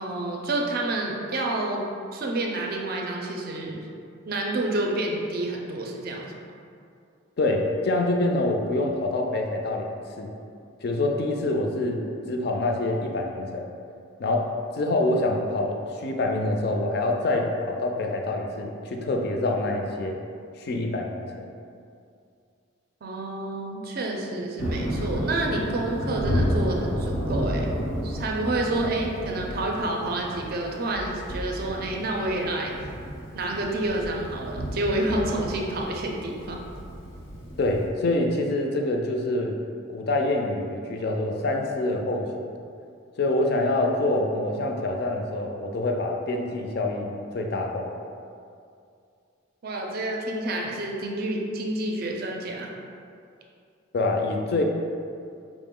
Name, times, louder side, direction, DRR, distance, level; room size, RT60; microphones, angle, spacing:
voice 1, 0.0-3.8 4.3-6.4 23.0-27.7 28.0-32.8 33.3-36.6 49.6-52.7, right 2 dB, 45° right, 0 dB, 0.4 m, -29 dB
voice 2, 7.4-10.3 10.8-12.0 12.3-13.7 14.2-20.2 20.6-21.3 37.6-39.6 39.9-42.5 43.2-47.9 53.9-54.6, left 2 dB, 50° left, 2 dB, 0.4 m, -26 dB
Thunder, 24.6-37.9, equal, 85° left, 0.8 m, -31 dB
5.0 x 2.0 x 3.6 m, 2.4 s
head